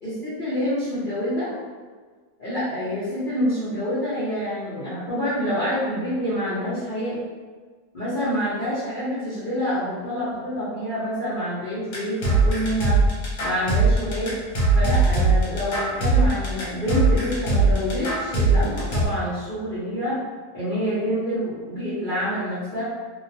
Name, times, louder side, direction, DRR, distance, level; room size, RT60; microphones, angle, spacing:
voice 1, 0.0-1.5 2.4-7.2 7.9-13.0 13.4-14.3 14.7-20.2 20.5-22.8, equal, 40° left, -12 dB, 0.7 m, -27 dB
sound 1, 11.9-19.0, right 3 dB, 60° left, 1.1 m, -20 dB
2.8 x 2.1 x 2.7 m, 1.5 s
omnidirectional pair, 1.8 m